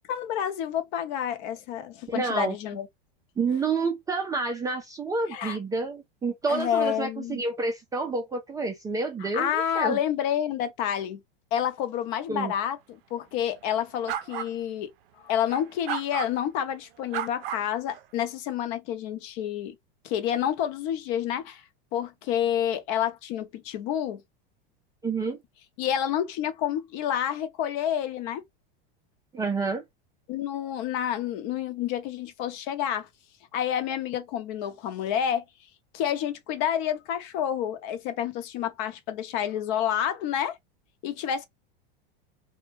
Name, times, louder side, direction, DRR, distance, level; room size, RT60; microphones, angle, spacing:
voice 1, 0.1-2.9 5.3-5.6 6.5-7.4 9.2-11.2 11.5-14.9 15.2-19.7 20.0-21.6 21.9-24.2 25.8-28.4 30.3-33.1 33.5-35.5 35.9-40.6 41.0-41.5, left 10 dB, 55° left, 0.7 m, -29 dB
voice 2, 2.1-2.6 3.4-10.0 12.3-12.5 25.0-25.4 29.3-29.8, right 4 dB, 10° right, 0.3 m, -29 dB
sound 1, 14.1-14.5 15.5-16.3 17.1-18.0, right 10 dB, 75° right, 0.5 m, -33 dB
2.2 x 2.1 x 3.1 m
supercardioid pair, 125°, 29 cm